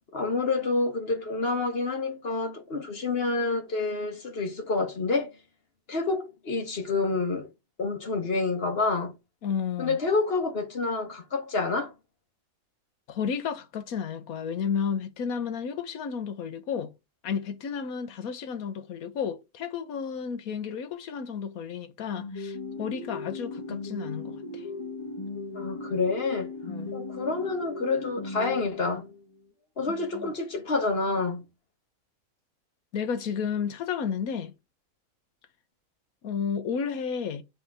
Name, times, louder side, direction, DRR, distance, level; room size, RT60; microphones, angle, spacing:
voice 1, 0.1-5.3 5.9-7.5 7.8-9.1 9.8-11.9 25.5-26.5 26.9-29.1 29.8-31.4, left 3 dB, 45° left, 1.4 m, -28 dB
voice 2, 9.4-10.0 13.1-16.9 17.2-24.7 26.6-26.9 29.9-30.3 32.9-34.5 36.2-37.4, left 7 dB, 85° left, 1.3 m, -32 dB
sound 1, 22.2-29.3, left 3 dB, 20° left, 1.1 m, -37 dB
8.3 x 3.5 x 4.7 m
omnidirectional pair, 1.5 m